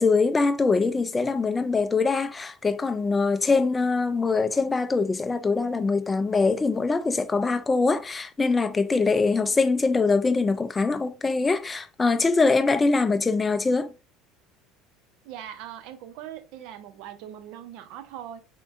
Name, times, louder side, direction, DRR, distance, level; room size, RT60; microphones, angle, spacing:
voice 1, 0.0-13.9, left 4 dB, 20° left, 0.3 m, -23 dB
voice 2, 9.3-9.6 15.2-18.4, right 10 dB, 70° right, 0.5 m, -41 dB
3.5 x 2.5 x 2.4 m
hypercardioid pair, 75°, 0 cm